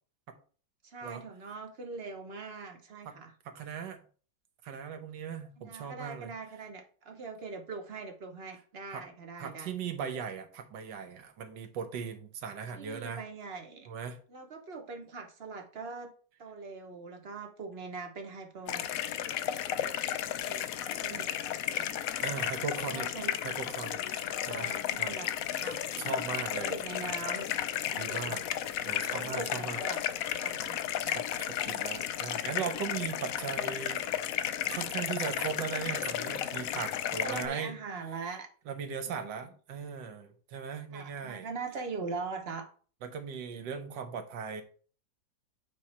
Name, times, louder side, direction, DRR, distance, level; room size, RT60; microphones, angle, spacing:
voice 1, 0.8-3.3 5.6-9.7 12.4-13.9 14.3-16.1 16.4-18.8 20.3-21.3 21.7-21.9 22.4-22.6 22.8-23.3 24.5-25.8 26.5-27.5 27.9-28.4 29.0-30.0 30.4-31.2 37.0-38.5 39.0-39.4 40.9-42.7, right 4 dB, 45° right, 0.8 m, -42 dB
voice 2, 3.4-4.0 4.6-6.3 8.9-9.0 9.4-13.2 13.9-14.2 22.2-23.1 23.4-24.7 25.0-25.2 25.5-26.7 28.0-28.4 28.8-29.8 31.1-34.1 34.7-37.8 38.7-41.5 43.0-44.6, right 6 dB, 70° right, 1.5 m, -38 dB
sound 1, 18.7-37.5, left 11 dB, 85° left, 0.7 m, -33 dB
8.6 x 3.0 x 4.2 m
omnidirectional pair, 2.0 m